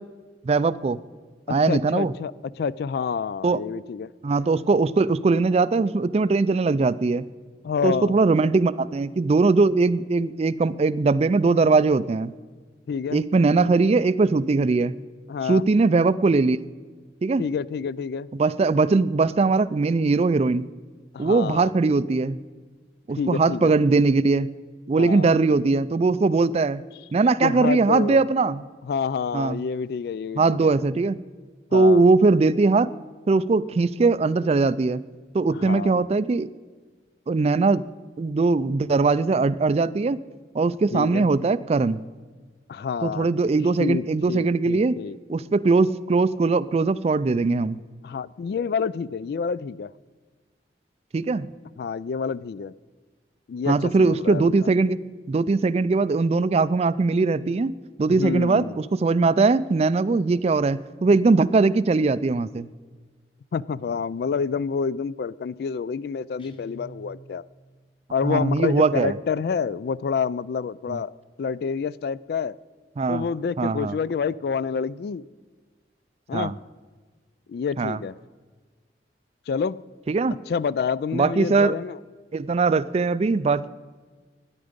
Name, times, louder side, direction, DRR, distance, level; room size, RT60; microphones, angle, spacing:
voice 1, 0.4-1.0 1.5-2.1 3.4-3.6 4.2-7.3 7.8-12.3 13.1-15.0 15.5-16.6 17.2-17.4 18.4-20.7 21.2-22.4 23.1-24.5 24.9-26.8 27.1-28.6 29.3-29.6 30.4-31.2 31.7-32.9 33.3-35.0 35.3-36.5 37.3-37.8 38.2-40.2 40.5-42.0 43.0-45.0 45.3-47.8 51.1-51.5 53.7-55.0 55.3-57.7 58.0-62.7 68.2-69.1 70.9-71.0 73.0-73.3 73.6-74.0 76.3-76.5 77.8-78.0 80.1-80.4 81.1-81.8 82.3-83.7, right 3 dB, 35° right, 17 dB, 0.3 m, -20 dB
voice 2, 1.5-2.3 2.6-4.1 7.6-8.2 12.9-13.2 15.3-15.6 17.4-18.3 21.1-21.7 23.2-23.7 25.0-25.3 27.4-28.2 28.8-30.7 31.7-32.1 35.6-36.1 40.9-41.3 42.7-43.3 43.8-45.2 48.0-49.9 51.8-52.7 53.5-54.7 58.1-58.8 63.5-67.4 68.1-71.1 71.4-72.6 73.1-75.2 76.3-76.5 77.5-78.1 79.5-79.8 80.5-82.0, left 6 dB, 60° left, 19 dB, 0.3 m, -28 dB
Guitar, 66.4-67.7, right 1 dB, 30° left, 1.0 m, -47 dB
13.0 x 10.0 x 5.1 m, 1.4 s
head